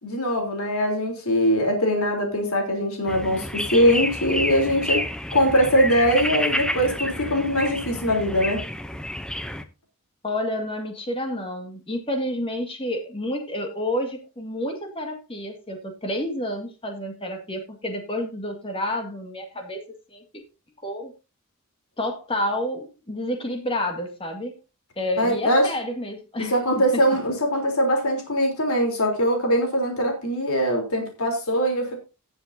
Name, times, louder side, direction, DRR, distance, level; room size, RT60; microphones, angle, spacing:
voice 1, 0.0-8.6 25.2-25.7 26.4-31.9, equal, 90° left, 3.6 m, -22 dB
sound 1, 3.1-9.6, equal, 5° left, 0.6 m, -30 dB
voice 2, 10.2-19.8 20.1-20.2 20.8-21.1 22.0-24.6 25.0-26.5 26.9-27.0, left 1 dB, 25° left, 2.0 m, -29 dB
18.0 x 7.2 x 2.7 m
head